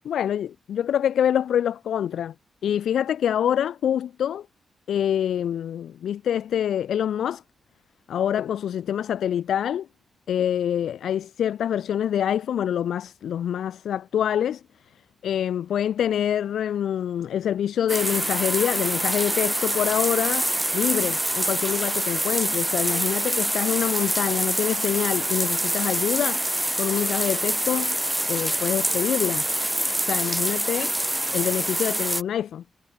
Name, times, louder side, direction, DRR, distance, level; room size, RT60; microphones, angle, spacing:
voice 1, 0.0-2.3 2.6-4.5 4.9-7.4 8.1-9.9 10.3-14.6 15.2-26.4 26.8-28.0 28.3-29.5 30.0-30.9 31.3-32.6, left 9 dB, 85° left, 2.1 m, -26 dB
sound 1, 17.9-32.2, right 1 dB, 10° right, 3.0 m, -25 dB
cardioid pair, 90°, 0 cm